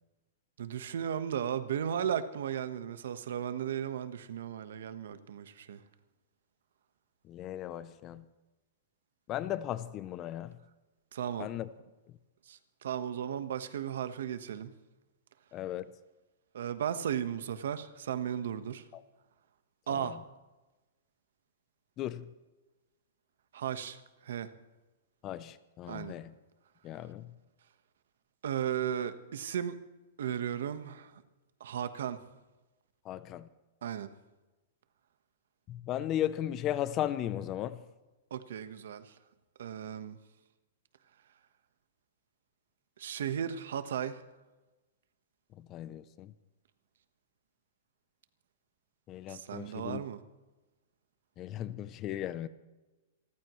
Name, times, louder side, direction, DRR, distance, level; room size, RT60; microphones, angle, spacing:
voice 1, 0.6-5.8 11.1-11.5 12.5-14.7 16.5-18.8 19.9-20.2 23.5-24.5 25.9-26.2 28.4-29.8 30.2-31.2 31.6-32.2 33.8-34.1 38.3-39.1 39.6-40.2 43.0-44.2 49.3-50.2, right 9 dB, 75° right, 1.3 m, -35 dB
voice 2, 7.3-8.2 9.3-10.5 11.4-11.7 15.5-15.9 18.9-19.0 20.0-20.2 22.0-22.3 25.2-26.3 26.8-27.3 33.0-33.5 35.7-37.8 45.6-46.3 49.1-50.0 51.4-52.5, left 12 dB, 25° left, 0.6 m, -36 dB
27.5 x 14.5 x 3.2 m
hypercardioid pair, 160°, 0 cm